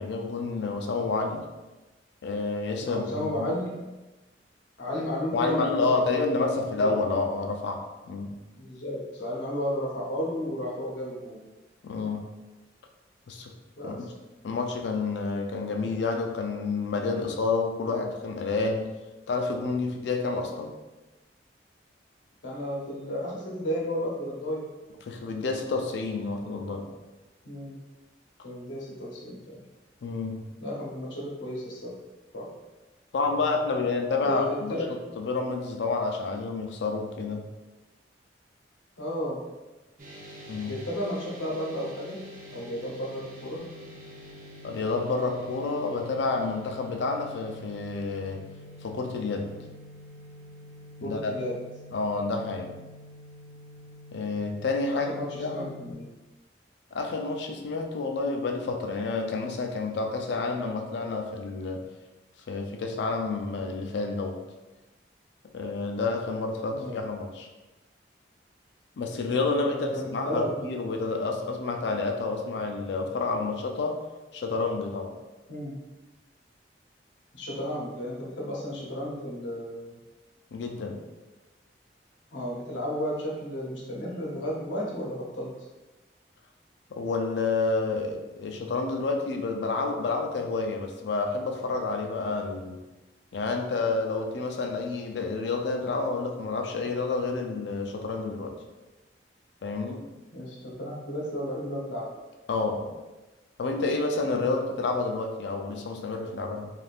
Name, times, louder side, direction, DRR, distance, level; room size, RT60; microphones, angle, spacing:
voice 1, 0.0-1.5 2.2-3.5 5.3-8.3 11.8-12.3 13.3-13.5 13.8-14.1 14.4-18.9 19.3-20.7 25.1-26.9 30.0-30.4 33.1-37.5 40.5-40.7 42.5-42.6 44.6-48.4 48.8-49.5 51.0-51.4 51.9-52.7 54.1-55.1 55.4-55.7 56.9-61.9 62.5-64.4 65.5-67.5 69.0-74.0 74.3-75.1 80.5-81.0 86.9-92.8 93.3-98.5 99.6-100.0 102.5-102.9 103.6-106.7, left 3 dB, 65° left, 3 dB, 0.4 m, -29 dB
voice 2, 2.8-3.7 4.8-5.9 6.2-6.9 8.6-11.4 13.8-14.1 22.4-24.6 27.4-27.8 28.4-29.6 30.6-31.9 32.3-32.5 34.2-34.9 39.0-39.4 40.7-42.2 42.5-43.6 51.0-51.5 54.9-56.1 66.7-66.9 69.6-70.6 75.5-75.7 77.3-80.0 82.3-85.5 100.3-102.1 104.2-104.5, equal, 90° left, -3 dB, 0.8 m, -33 dB
sound 1, 40.0-55.9, left 1 dB, 45° right, 0.6 m, -47 dB
3.4 x 2.4 x 2.4 m, 1.1 s
head